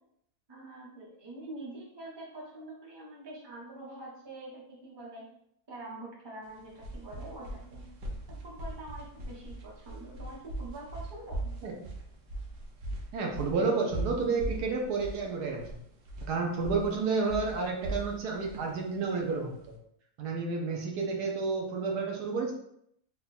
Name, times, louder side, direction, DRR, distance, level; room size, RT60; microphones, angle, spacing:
voice 1, 0.5-5.3 5.7-7.8 8.3-11.5, right 2 dB, 20° right, -3 dB, 0.7 m, -45 dB
sound 1, 6.5-19.7, right 1 dB, 60° right, 0.9 m, -40 dB
voice 2, 13.1-15.6 16.3-19.5 20.2-22.5, right 4 dB, 75° right, 1 dB, 1.3 m, -30 dB
3.7 x 2.3 x 4.1 m, 0.72 s
omnidirectional pair, 1.7 m